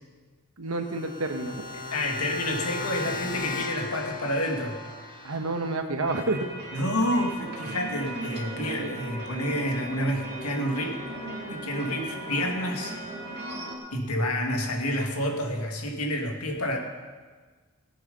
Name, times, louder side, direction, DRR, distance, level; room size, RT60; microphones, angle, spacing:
voice 1, 0.6-1.5 5.2-6.5, right 2 dB, 75° right, 5 dB, 1.3 m, -29 dB
sound 1, 0.7-5.8, left 3 dB, 35° left, 2.3 m, -36 dB
voice 2, 1.9-4.8 6.7-11.0 11.5-12.9 13.9-16.8, left 1 dB, 85° left, 2 dB, 2.1 m, -29 dB
sound 2, 6.0-13.8, right 1 dB, 50° right, 2.2 m, -37 dB
18.5 x 7.8 x 5.5 m, 1.4 s
head